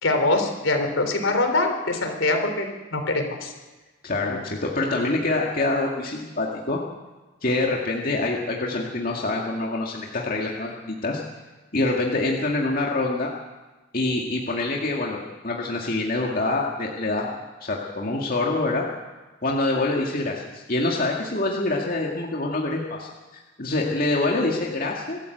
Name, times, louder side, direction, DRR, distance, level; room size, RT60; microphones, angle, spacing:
voice 1, 0.0-2.7 2.9-3.5, left 2 dB, 75° left, 5 dB, 3.6 m, -23 dB
voice 2, 4.0-6.8 7.4-11.2 11.7-13.3 13.9-18.9 19.4-25.2, left 2 dB, 45° left, -2 dB, 2.1 m, -25 dB
24.5 x 13.5 x 8.0 m, 1.2 s
head